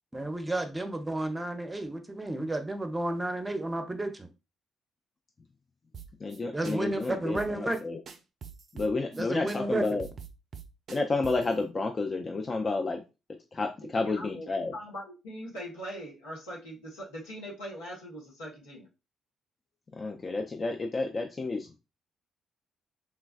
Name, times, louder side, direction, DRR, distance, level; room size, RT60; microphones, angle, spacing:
voice 1, 0.1-4.3 6.5-7.8 9.1-9.8, right 2 dB, 20° right, 6 dB, 0.6 m, -32 dB
sound 1, 5.9-6.4 6.6-6.8 7.0-7.1 7.4-7.8 8.1-9.2 9.5-9.6 9.8-11.5, right 6 dB, 55° right, 0.4 m, -44 dB
voice 2, 6.2-8.0 8.7-10.1 10.9-13.0 13.5-14.7 19.9-21.8, left 3 dB, 40° left, 2 dB, 0.4 m, -31 dB
voice 3, 13.8-18.9, equal, 90° left, -6 dB, 1.1 m, -42 dB
3.2 x 2.2 x 2.3 m, 0.28 s
hypercardioid pair, 50°, 0 cm